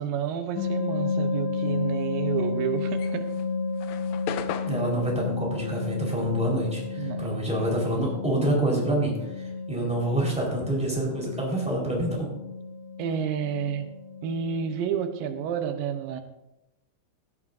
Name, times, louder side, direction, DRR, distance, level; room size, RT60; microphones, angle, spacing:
voice 1, 0.0-3.3 7.0-7.4 13.0-13.9 14.2-16.2, right 8 dB, 90° right, 7 dB, 2.6 m, -30 dB
sound 1, 0.5-15.4, left 4 dB, 55° left, 2.8 m, -32 dB
sound 2, 2.8-7.6 7.8-9.8, left 9 dB, 80° left, 1.7 m, -39 dB
voice 2, 4.7-12.3, right 1 dB, ahead, -3 dB, 4.0 m, -27 dB
16.0 x 14.0 x 2.6 m, 0.90 s
omnidirectional pair, 4.0 m